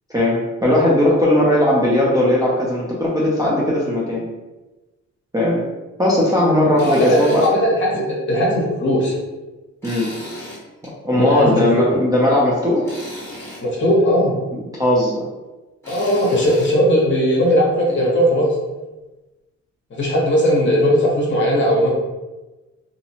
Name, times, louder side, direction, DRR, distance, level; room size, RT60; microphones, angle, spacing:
voice 1, 0.1-4.2 5.3-5.6 6.0-7.4 7.9-8.1 9.8-10.1 11.0-12.8 14.5-15.2, left 1 dB, 15° right, -7 dB, 0.3 m, -18 dB
voice 2, 6.8-8.0 8.3-9.1 11.1-11.8 13.6-14.3 15.9-18.5 19.9-21.9, equal, 40° left, -4 dB, 0.7 m, -17 dB
Tools, 6.8-7.5 7.9-8.0 9.8-10.9 12.8-13.6 15.8-16.7, left 1 dB, 10° left, 0.9 m, -35 dB
2.7 x 2.0 x 2.7 m, 1.1 s
wide cardioid pair, 180°, 29 cm